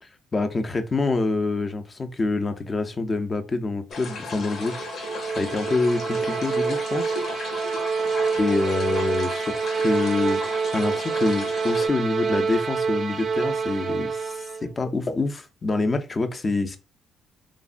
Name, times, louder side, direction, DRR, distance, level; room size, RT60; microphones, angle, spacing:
voice 1, 0.3-4.9 5.4-7.2 8.4-10.4 10.7-16.8, left 3 dB, 30° left, 0.5 m, -26 dB
sound 1, 3.9-11.9, left 3 dB, 65° left, 0.7 m, -36 dB
sound 2, 4.1-14.7, right 5 dB, 55° right, 0.4 m, -27 dB
3.2 x 2.1 x 2.4 m
cardioid pair, 90°, 0 cm